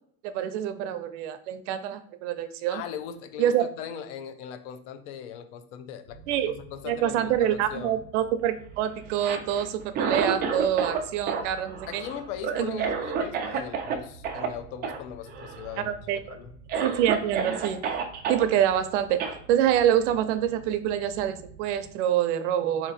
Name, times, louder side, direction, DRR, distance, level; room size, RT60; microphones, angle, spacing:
voice 1, 0.2-2.8 3.4-3.6 6.3-6.5 6.9-12.0 12.6-12.9 15.8-16.2 16.8-17.8 18.3-22.9, right 10 dB, 85° right, 11 dB, 0.6 m, -26 dB
voice 2, 2.7-6.2 6.5-8.0 11.9-16.0 16.3-16.5, left 9 dB, 75° left, 10 dB, 0.7 m, -39 dB
sound 1, 6.1-21.9, right 4 dB, 10° right, 0.9 m, -50 dB
Cough, 9.1-11.0 11.3-14.0 14.2-14.5 14.8-15.0 15.3-15.8 16.3-16.4 16.7-18.4 19.2-19.4, right 6 dB, 25° right, 0.5 m, -29 dB
3.9 x 3.0 x 4.0 m, 0.64 s
cardioid pair, 160°, 35 cm